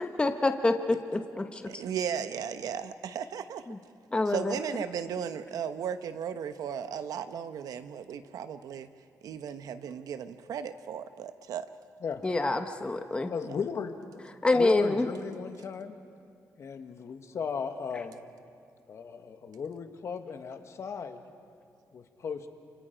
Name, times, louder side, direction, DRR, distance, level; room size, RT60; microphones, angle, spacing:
voice 1, 0.0-1.6 3.7-3.8 4.1-4.6 12.2-13.3 14.4-15.1, left 2 dB, 15° left, 6 dB, 1.1 m, -26 dB
voice 2, 1.7-3.6 4.3-8.9 9.2-11.7, right 8 dB, 75° right, 10 dB, 1.0 m, -36 dB
voice 3, 13.3-14.2 14.5-15.9 16.6-18.2 18.9-21.2 21.9-22.5, left 6 dB, 50° left, 7 dB, 1.5 m, -36 dB
28.5 x 26.5 x 5.2 m, 2.3 s
cardioid pair, 135°, 6 cm